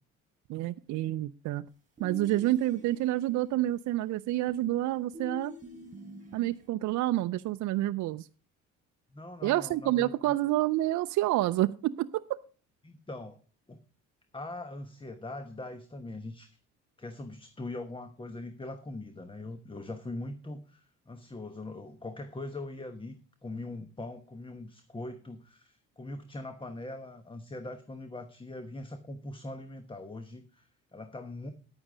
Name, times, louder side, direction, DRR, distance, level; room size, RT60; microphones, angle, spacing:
voice 1, 0.5-1.7 2.0-5.5 6.3-8.3 9.4-12.2, right 15 dB, 65° right, 10 dB, 0.5 m, -28 dB
sound 1, 2.0-3.2 4.5-6.7, left 1 dB, 25° right, 3.5 m, -46 dB
voice 2, 9.1-10.3 12.8-13.4 13.7-13.8 14.3-16.6 17.0-23.1 23.4-31.5, left 2 dB, 15° left, 9 dB, 1.1 m, -41 dB
10.0 x 8.8 x 5.0 m, 0.37 s
cardioid pair, 85°, 31 cm